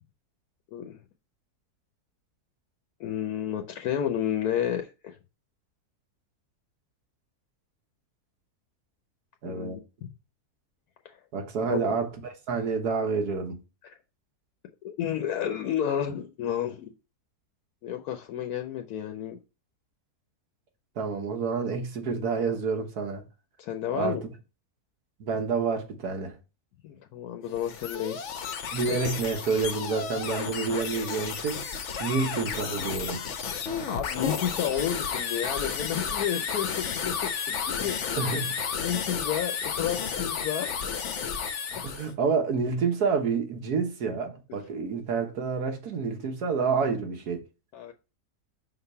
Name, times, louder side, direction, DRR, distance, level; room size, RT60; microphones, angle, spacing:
voice 1, 3.0-5.2 9.4-10.1 11.0-11.2 11.7-11.8 14.8-16.9 17.8-19.4 23.6-24.2 26.8-28.3 28.9-29.0 33.8-38.4 38.8-40.8 47.7-47.9, left 10 dB, 80° left, 1.2 m, -31 dB
voice 2, 9.4-9.8 11.3-13.6 21.0-23.2 23.9-24.2 25.2-26.4 28.7-31.6 32.0-33.2 38.2-38.6 41.7-47.4, right 5 dB, 90° right, 1.7 m, -28 dB
sound 1, 27.5-42.1, left 6 dB, 55° left, 1.0 m, -32 dB
5.9 x 4.0 x 5.5 m
omnidirectional pair, 1.6 m